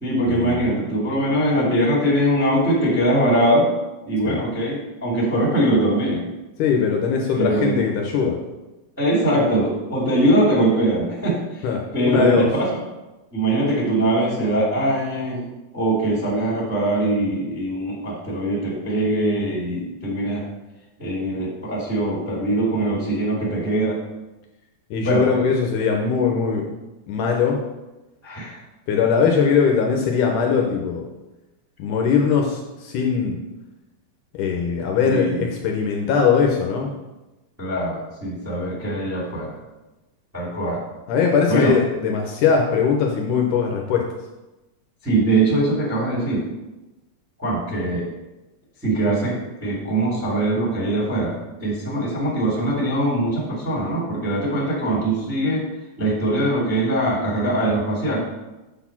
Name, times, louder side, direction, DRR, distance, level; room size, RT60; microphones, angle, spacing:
voice 1, 0.0-3.7 4.0-6.2 7.3-7.8 9.0-11.4 11.9-12.7 13.3-15.4 15.7-20.4 21.0-24.0 25.0-25.3 28.2-28.5 35.0-35.5 37.6-39.6 40.3-40.8 41.5-41.7 45.0-46.5 47.4-48.1 48.8-55.6 56.0-58.2, right 1 dB, 5° right, -8 dB, 1.4 m, -22 dB
voice 2, 6.6-8.4 11.6-12.5 24.9-26.6 27.1-27.6 28.9-31.0 31.8-33.4 34.3-36.9 41.1-44.0, left 6 dB, 75° left, 1 dB, 2.0 m, -20 dB
6.8 x 4.1 x 5.8 m, 1.1 s
omnidirectional pair, 4.0 m